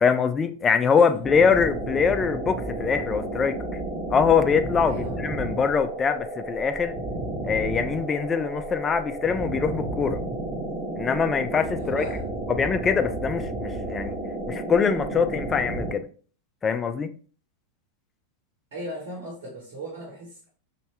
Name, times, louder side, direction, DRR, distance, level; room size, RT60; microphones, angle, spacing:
voice 1, 0.0-3.6 4.1-6.9 7.4-10.2 11.0-12.0 12.5-14.2 14.5-16.0 16.6-17.1, left 6 dB, 20° left, 0.3 m, -23 dB
voice 2, 0.8-1.7 4.9-5.2 11.8-12.2 18.7-20.5, right 1 dB, 55° right, 1.0 m, -38 dB
sound 1, 1.2-15.9, right 2 dB, 20° right, 0.8 m, -32 dB
2.7 x 2.2 x 3.2 m
figure-of-eight pair, 90°, 0 cm